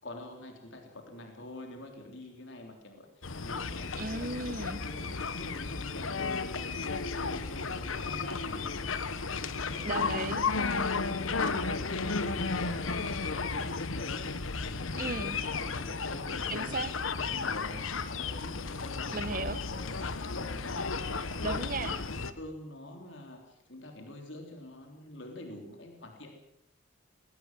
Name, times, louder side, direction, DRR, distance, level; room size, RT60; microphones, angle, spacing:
voice 1, 0.0-4.4 4.8-4.9 5.3-10.6 11.1-14.2 14.6-20.6 20.9-26.3, left 1 dB, 65° left, 3 dB, 3.5 m, -46 dB
sound 1, 3.2-22.3, left 4 dB, 90° left, 1.2 m, -34 dB
voice 2, 4.0-4.8 9.8-10.5 15.0-15.4 16.5-16.9 19.1-19.6 21.4-22.0, right 3 dB, 45° right, 14 dB, 1.1 m, -35 dB
20.0 x 18.5 x 7.6 m, 0.77 s
head